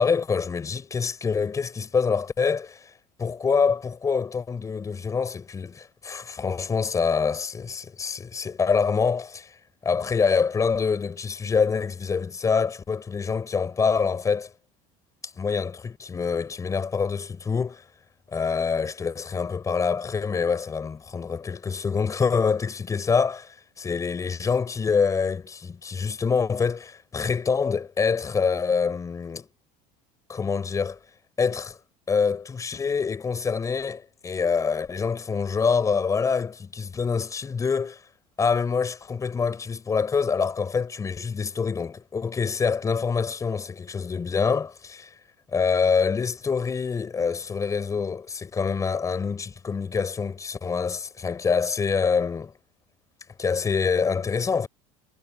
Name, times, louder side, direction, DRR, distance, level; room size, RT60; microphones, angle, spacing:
voice 1, 0.0-2.9 3.2-9.5 9.8-14.5 15.4-17.8 18.3-23.5 23.8-29.5 30.3-31.0 31.4-31.8 32.1-38.0 38.4-45.1 45.5-52.5 53.4-54.7, left 5 dB, 20° left, 6.3 m, -25 dB
cardioid pair, 160°, 17 cm